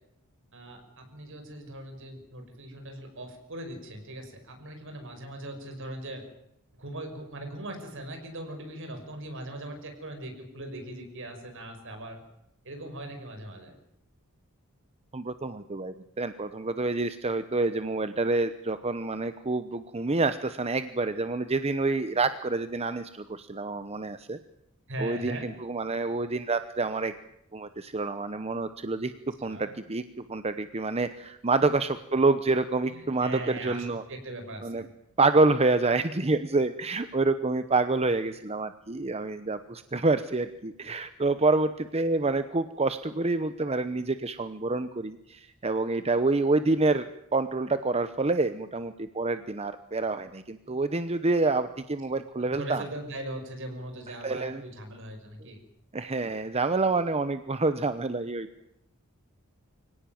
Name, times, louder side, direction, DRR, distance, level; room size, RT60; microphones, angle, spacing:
voice 1, 0.5-6.2 6.7-12.2 12.6-13.7 24.9-25.5 29.4-29.7 32.8-34.9 52.4-55.6, right 1 dB, 60° right, 5 dB, 5.8 m, -40 dB
voice 2, 15.1-24.4 25.0-27.1 27.5-29.1 29.4-34.0 34.6-34.8 35.2-52.8 54.2-54.6 55.9-58.5, right 3 dB, 30° right, 11 dB, 0.9 m, -27 dB
24.5 x 17.5 x 9.3 m, 0.80 s
head